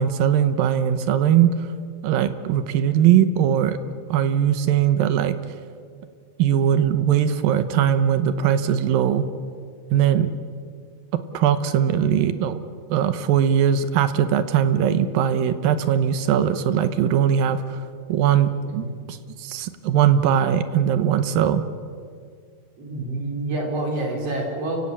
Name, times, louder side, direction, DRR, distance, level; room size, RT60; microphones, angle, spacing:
voice 1, 0.0-1.7 2.0-3.8 4.1-5.4 6.4-9.3 9.9-10.3 11.3-12.6 12.9-17.8 18.1-21.6, right 9 dB, 70° right, 11 dB, 2.5 m, -20 dB
voice 2, 22.8-24.8, right 2 dB, 40° right, 0 dB, 5.1 m, -27 dB
29.5 x 16.5 x 8.6 m, 2.2 s
omnidirectional pair, 4.6 m